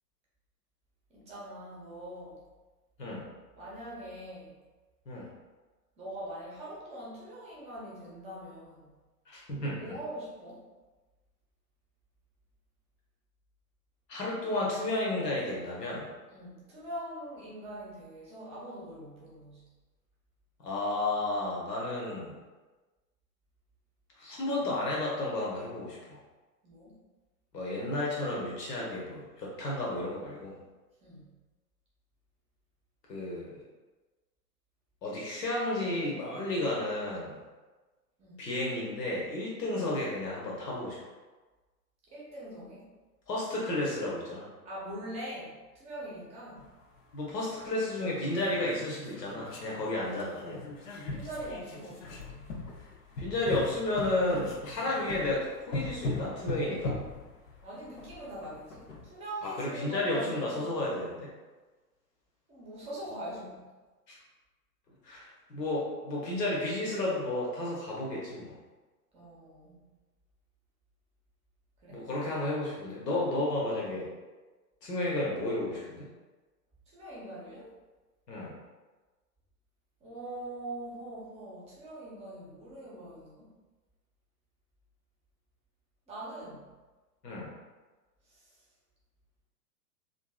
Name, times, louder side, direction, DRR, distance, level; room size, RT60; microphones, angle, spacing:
voice 1, 1.1-2.4 3.5-4.6 6.0-8.9 9.8-10.6 16.3-19.6 26.6-27.0 31.0-31.3 38.2-38.4 42.1-42.9 44.6-46.6 51.1-52.6 57.6-60.7 62.5-63.7 69.1-69.9 71.8-72.1 76.9-77.7 80.0-83.5 86.1-86.6 88.3-88.5, right 1 dB, 15° right, -6 dB, 0.6 m, -43 dB
voice 2, 9.3-10.0 14.1-16.1 20.6-22.4 24.2-26.2 27.5-30.6 33.1-33.5 35.0-37.4 38.4-41.0 43.3-44.5 47.1-50.6 53.2-57.0 59.4-61.3 64.1-64.2 65.0-68.5 71.9-74.1 74.8-76.1 78.3-78.5 87.2-87.5, left 2 dB, 80° left, -4 dB, 0.9 m, -32 dB
sound 1, 46.6-46.7 47.6-47.7 48.0-49.7 50.0-59.1, left 2 dB, 55° left, 0.6 m, -40 dB
2.6 x 2.5 x 2.3 m, 1.2 s
figure-of-eight pair, 100°, 49 cm